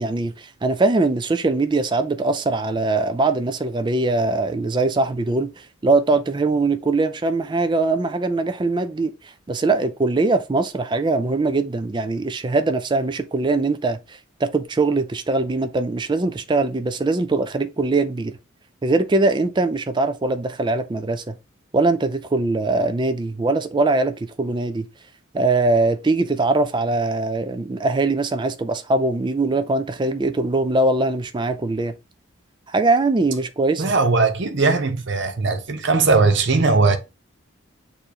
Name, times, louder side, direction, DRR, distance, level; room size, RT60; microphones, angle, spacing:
voice 1, 0.0-18.3 18.8-21.4 21.7-24.9 25.3-31.9 32.7-33.8, right 3 dB, 20° right, 0.4 m, -21 dB
voice 2, 33.8-37.0, right 3 dB, 60° right, 0.7 m, -19 dB
6.6 x 2.7 x 2.8 m
head